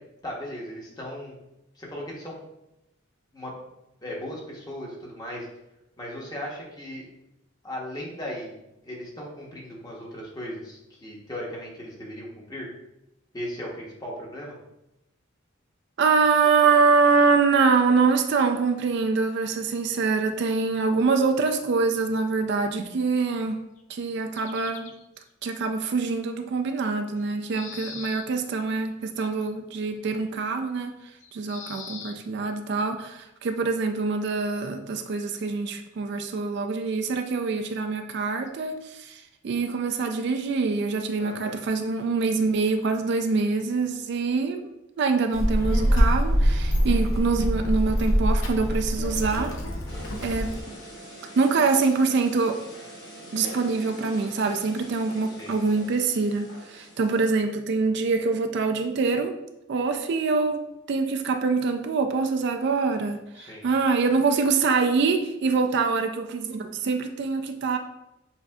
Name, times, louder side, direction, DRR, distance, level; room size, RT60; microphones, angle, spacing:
voice 1, 0.2-1.4 1.7-2.4 3.3-3.5 4.0-5.5 6.0-7.1 7.6-8.6 8.8-12.7 13.3-14.6 41.2-41.6 55.4-55.7 63.3-63.7, equal, 20° left, -3 dB, 0.9 m, -37 dB
voice 2, 16.0-23.6 23.9-24.9 25.4-31.0 31.3-44.6 45.0-49.6 50.2-50.5 51.4-52.6 53.3-59.3 59.7-60.6 60.9-67.8, right 4 dB, 55° right, 6 dB, 0.3 m, -24 dB
sound 1, 23.8-23.9 24.3-25.2 27.2-28.3 29.2-29.5 31.2-32.2 33.4-33.5 35.1-35.5 35.9-36.0 36.9-37.3 38.5-38.6, left 5 dB, 35° left, 0.3 m, -43 dB
Child speech kid speaking, 45.3-50.6, equal, 70° left, 0.7 m, -24 dB
sound 2, 49.9-57.3, equal, 55° left, 1.2 m, -43 dB
7.0 x 2.6 x 2.3 m, 0.90 s
head